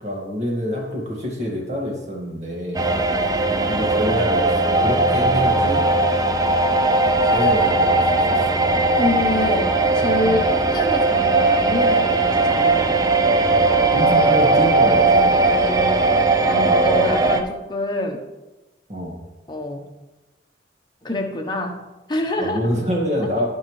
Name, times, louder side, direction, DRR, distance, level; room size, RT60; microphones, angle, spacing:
voice 1, 0.0-2.9 3.6-5.8 7.2-8.6 10.2-10.5 13.9-15.4 18.9-19.2 22.4-23.5, equal, 40° right, -1 dB, 1.9 m, -26 dB
sound 1, 2.7-17.4, right 2 dB, 20° right, 0.5 m, -18 dB
voice 2, 2.8-3.2 9.0-10.5 10.7-13.1 15.4-16.1 16.4-18.2 19.5-19.9 21.0-21.8 22.1-22.6, left 1 dB, 25° left, 2 dB, 1.0 m, -26 dB
16.0 x 5.5 x 3.2 m, 1.0 s
head